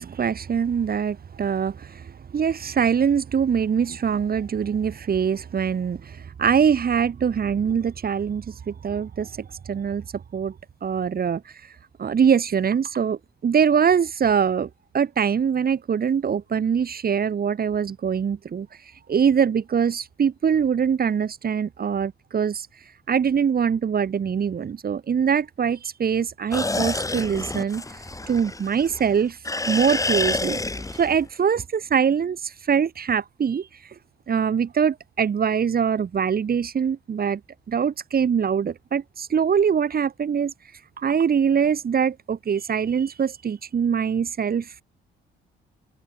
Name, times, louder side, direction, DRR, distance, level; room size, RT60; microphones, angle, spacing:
voice 1, 0.0-10.0 10.3-10.5 10.8-11.4 12.0-14.7 14.9-18.7 19.1-22.7 23.1-27.8 28.3-29.4 29.7-30.6 30.9-33.7 34.3-37.4 37.7-40.5 41.0-44.8, right 7 dB, 50° right, 6.6 m, -23 dB
sound 1, 26.5-29.1 29.4-31.3, left 2 dB, 15° left, 4.3 m, -28 dB
cardioid pair, 90°, 20 cm